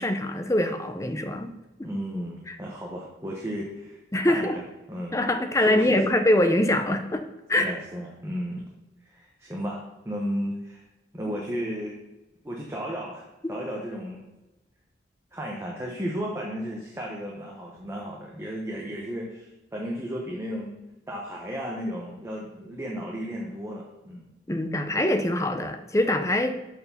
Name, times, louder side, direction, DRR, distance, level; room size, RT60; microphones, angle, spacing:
voice 1, 0.0-1.5 1.8-1.9 2.5-2.6 4.1-4.5 5.1-7.2 7.5-7.7 24.5-26.6, left 1 dB, 15° left, 6 dB, 0.6 m, -24 dB
voice 2, 1.8-4.0 4.3-4.5 4.9-5.2 5.6-6.1 7.6-8.7 9.0-10.8 11.1-11.9 12.4-14.2 15.3-20.7 21.1-24.3, equal, 15° right, -2 dB, 1.0 m, -34 dB
6.5 x 4.6 x 6.7 m, 1.0 s
head